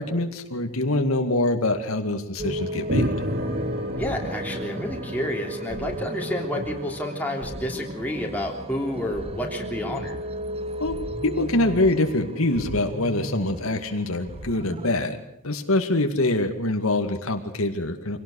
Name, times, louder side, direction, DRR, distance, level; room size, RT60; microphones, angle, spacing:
voice 1, 0.0-3.0 10.8-10.9 11.2-15.2 15.4-18.2, left 2 dB, 85° left, 5 dB, 2.2 m, -24 dB
sound 1, 2.4-14.9, equal, 25° right, 1.1 m, -34 dB
sound 2, 2.9-7.6, equal, 50° right, 2.0 m, -31 dB
voice 2, 4.0-10.2, left 1 dB, 10° left, 0 dB, 3.2 m, -30 dB
25.0 x 18.0 x 6.5 m, 0.75 s
head